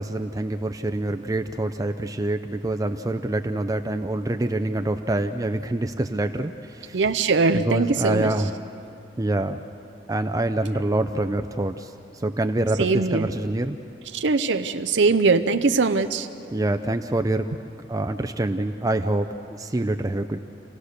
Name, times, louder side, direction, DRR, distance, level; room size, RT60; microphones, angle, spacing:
voice 1, 0.0-7.0 7.5-8.5 9.2-9.6 10.1-11.9 12.2-13.8 16.5-17.5 17.9-20.4, right 1 dB, 20° right, 7 dB, 0.5 m, -26 dB
voice 2, 6.9-8.3 12.8-13.3 14.1-16.3, right 4 dB, 90° right, 8 dB, 0.7 m, -21 dB
28.5 x 17.0 x 6.6 m, 2.6 s
head